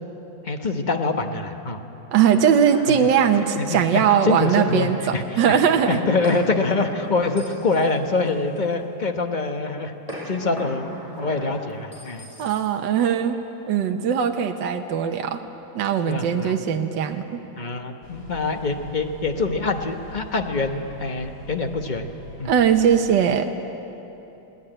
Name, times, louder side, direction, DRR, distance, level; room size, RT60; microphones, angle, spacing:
voice 1, 0.4-1.8 2.9-3.1 3.6-5.6 5.9-9.9 10.2-12.3 16.0-16.6 17.6-22.1 22.4-22.5, left 3 dB, 30° left, 5 dB, 0.9 m, -25 dB
voice 2, 2.1-6.0 12.4-13.4 13.7-15.4 15.7-17.4 22.4-23.5, right 8 dB, 70° right, 5 dB, 1.6 m, -20 dB
sound 1, 2.2-4.7 6.2-8.9 10.1-12.9, equal, 15° left, 6.2 m, -38 dB
sound 2, 18.0-23.0, left 2 dB, 55° left, 3.0 m, -42 dB
22.5 x 17.5 x 9.0 m, 3.0 s
omnidirectional pair, 2.1 m